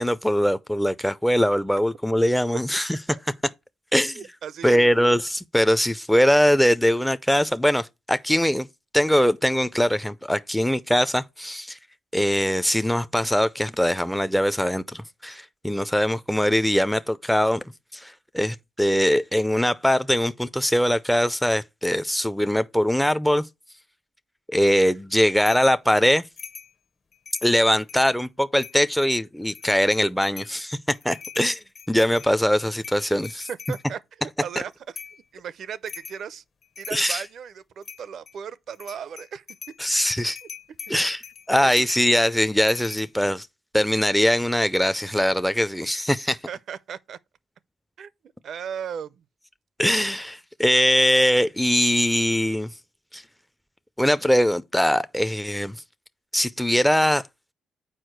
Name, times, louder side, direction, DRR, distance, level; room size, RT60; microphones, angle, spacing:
voice 1, 0.0-3.0 3.9-4.2 4.6-8.7 8.9-11.8 12.1-17.6 17.9-23.5 24.5-26.2 27.4-30.8 31.0-33.5 36.9-37.2 39.8-40.4 40.9-41.2 41.5-43.5 43.7-46.4 49.8-52.7 53.1-53.2 54.0-55.8 56.3-57.2, equal, 5° left, 0.4 m, -22 dB
voice 2, 4.1-4.9 33.5-35.0 35.3-36.4 36.8-39.4 40.9-41.0 41.6-41.9 46.5-47.2 48.0-48.1 48.4-49.2, right 8 dB, 60° right, 0.4 m, -36 dB
sound 1, 25.5-25.7 26.4-26.7 27.1-28.1 28.6-29.1 29.5-30.6 30.9-33.8 35.0-35.2 35.9-36.2 36.6-37.3 37.8-38.4 38.7-39.8 40.4-43.1, left 6 dB, 50° left, 0.8 m, -42 dB
6.4 x 4.6 x 4.5 m
cardioid pair, 90°, 0 cm